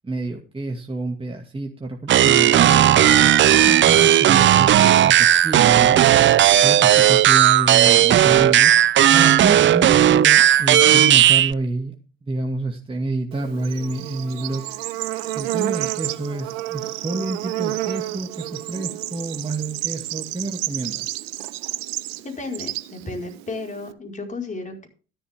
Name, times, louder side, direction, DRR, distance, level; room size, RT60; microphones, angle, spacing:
voice 1, 0.0-6.0 6.6-8.7 9.1-11.9 12.2-14.6 15.3-21.1, right 2 dB, 15° right, 2 dB, 2.2 m, -28 dB
sound 1, 2.1-11.5, right 11 dB, 40° right, 0.6 m, -14 dB
Bird / Insect, 13.3-23.9, right 16 dB, 75° right, 0.8 m, -30 dB
voice 2, 22.2-24.9, left 3 dB, 25° left, 1 dB, 5.0 m, -33 dB
12.5 x 11.5 x 3.6 m, 0.37 s
hypercardioid pair, 60°, 31 cm